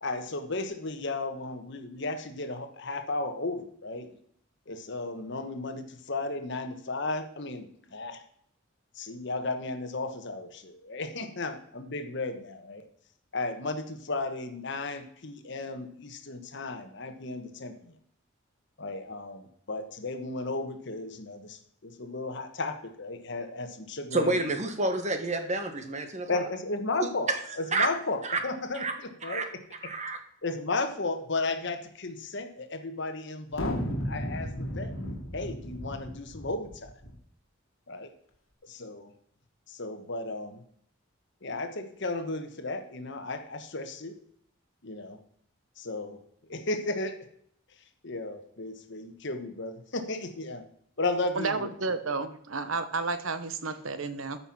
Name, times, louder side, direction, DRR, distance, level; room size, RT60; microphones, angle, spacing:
voice 1, 0.0-4.1 4.7-8.2 8.9-12.9 13.3-17.9 18.8-24.4 26.3-29.6 30.4-34.9 35.3-36.9 37.9-38.1 38.6-39.1 39.7-40.6 41.4-44.2 44.8-45.2 45.8-46.2 46.5-47.2 48.0-50.7 51.0-51.7, left 2 dB, 60° left, 8 dB, 1.3 m, -34 dB
voice 2, 24.1-26.4 27.0-27.1 27.7-27.9 28.2-28.4 28.7-28.9 29.2-29.5 29.8-30.2, right 2 dB, 35° right, 7 dB, 1.4 m, -29 dB
sound 1, 33.5-37.2, equal, 75° left, 1.9 m, -34 dB
voice 3, 51.4-54.4, right 4 dB, 75° right, 11 dB, 1.0 m, -31 dB
13.5 x 5.7 x 6.0 m, 0.66 s
head